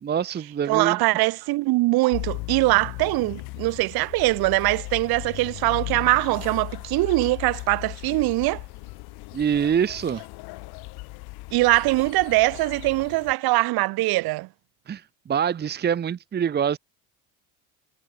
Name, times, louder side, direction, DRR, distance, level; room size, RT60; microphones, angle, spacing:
voice 1, 0.0-1.0 9.3-10.2 14.9-16.8, right 8 dB, 25° right, 1.2 m, -25 dB
voice 2, 0.7-8.6 11.5-14.5, right 21 dB, 60° right, 3.0 m, -22 dB
sound 1, 2.1-13.3, left 24 dB, 70° left, 4.5 m, -37 dB
cardioid pair, 125°, 41 cm